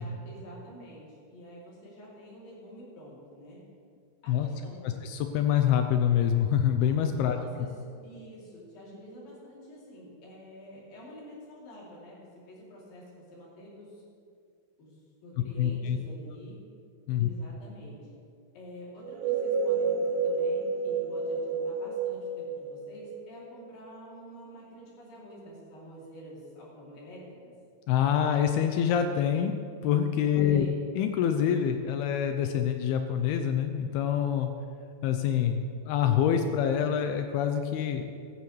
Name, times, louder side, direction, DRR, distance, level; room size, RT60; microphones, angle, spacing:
voice 1, 0.0-3.7 4.2-5.1 7.2-14.0 14.8-16.6 17.2-18.1 18.5-27.5 30.3-30.7, equal, 65° left, -5 dB, 4.7 m, -48 dB
voice 2, 4.8-7.7 15.6-16.0 17.1-17.3 27.9-29.5 29.8-30.7 31.0-34.5 35.0-38.2, left 9 dB, 85° left, 6 dB, 2.5 m, -26 dB
sound 1, 19.0-23.6, right 4 dB, 75° right, 1.4 m, -30 dB
15.5 x 14.0 x 3.2 m, 2.3 s
omnidirectional pair, 4.5 m